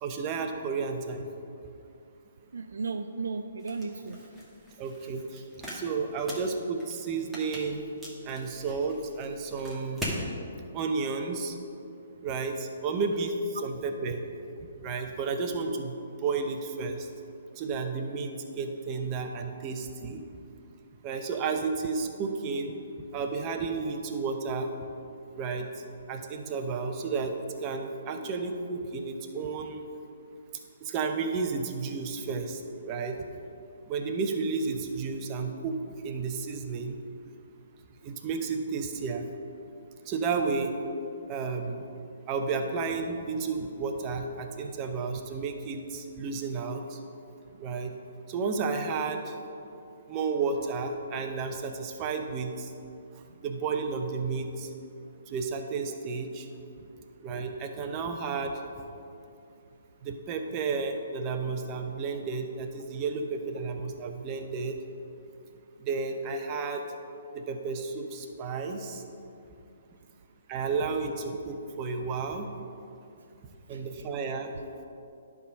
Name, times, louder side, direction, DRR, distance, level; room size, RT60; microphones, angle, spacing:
voice 1, 0.0-1.3 4.8-5.4 5.7-7.8 8.2-10.1 10.7-11.5 12.2-14.2 14.6-17.1 17.6-20.2 21.0-22.8 23.1-24.7 25.4-25.7 26.1-27.4 27.6-29.8 30.8-33.2 33.9-37.0 38.0-39.3 40.1-40.8 41.3-41.8 42.3-47.0 47.6-47.9 48.3-49.3 50.1-52.7 53.4-54.7 55.3-56.5 57.2-58.6 60.0-64.8 65.8-66.8 67.3-69.0 70.5-72.5 73.7-74.5, right 4 dB, 30° right, 4 dB, 0.8 m, -32 dB
voice 2, 2.5-4.2 56.9-57.0 73.7-73.8, right 4 dB, 75° right, 8 dB, 0.3 m, -35 dB
sound 1, 3.6-10.2, equal, 5° right, 1.5 m, -42 dB
11.0 x 3.7 x 5.2 m, 2.6 s
hypercardioid pair, 135°, 0 cm